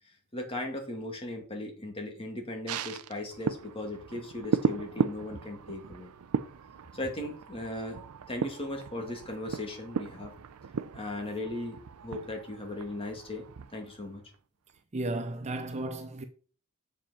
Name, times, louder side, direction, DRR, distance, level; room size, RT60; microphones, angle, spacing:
voice 1, 0.3-6.1 6.9-8.0 8.3-10.3 10.9-13.5 13.7-14.2, left 1 dB, 25° left, 2.3 m, -37 dB
sound 1, 2.7-14.4 14.7-14.8, right 6 dB, 85° right, 0.5 m, -36 dB
voice 2, 14.9-16.2, right 2 dB, 30° right, 0.6 m, -34 dB
7.1 x 5.1 x 5.0 m
head